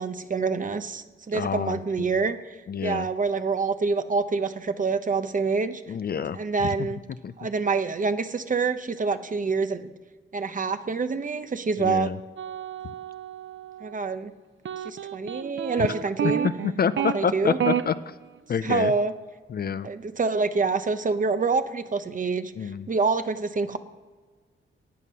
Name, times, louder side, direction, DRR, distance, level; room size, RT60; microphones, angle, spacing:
voice 1, 0.0-5.8 6.3-7.0 7.4-9.9 10.3-12.1 13.8-14.3 14.8-16.5 17.0-17.6 18.6-19.1 19.8-23.8, right 4 dB, 40° right, 10 dB, 0.8 m, -26 dB
voice 2, 1.3-1.8 2.7-3.1 5.9-6.7 7.2-7.3 11.8-12.2 15.8-15.9 16.4-17.9 18.5-18.9 19.5-19.9 22.6-22.9, left 7 dB, 45° left, 14 dB, 0.4 m, -27 dB
sound 1, 12.4-13.9 14.6-17.1 17.6-17.8, right 9 dB, 65° right, 0.6 m, -30 dB
14.0 x 9.3 x 5.6 m, 1.4 s
wide cardioid pair, 115°, 21 cm